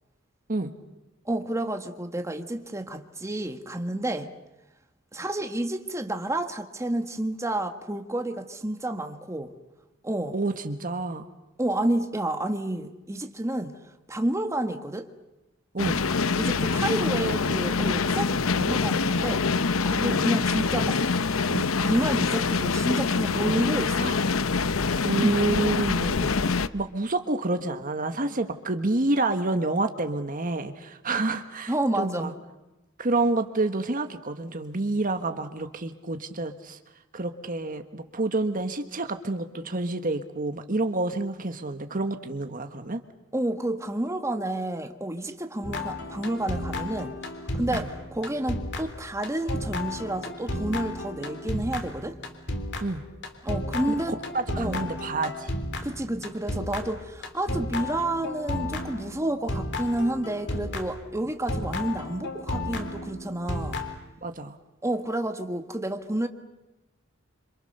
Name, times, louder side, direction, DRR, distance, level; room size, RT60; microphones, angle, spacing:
voice 1, 1.2-4.3 5.1-9.5 10.0-10.4 11.6-13.7 14.1-15.1 16.4-19.4 19.8-21.0 21.5-24.1 25.2-25.3 31.7-32.3 43.3-47.1 47.5-52.2 53.4-54.2 54.6-54.9 55.8-63.8 64.8-66.3, right 1 dB, 15° right, 6 dB, 1.5 m, -30 dB
voice 2, 10.3-11.2 15.7-16.0 20.0-20.2 24.0-24.2 25.0-26.3 26.7-32.3 33.0-36.8 37.1-43.0 47.7-47.8 52.8-53.0 53.9-54.0 54.3-55.5 64.2-64.5, right 2 dB, 40° right, 8 dB, 1.4 m, -28 dB
sound 1, 15.8-26.7, left 4 dB, 75° left, 0.8 m, -25 dB
sound 2, 45.6-61.1 61.5-63.9, left 1 dB, 60° left, 3.3 m, -33 dB
27.0 x 27.0 x 6.7 m, 1.0 s
head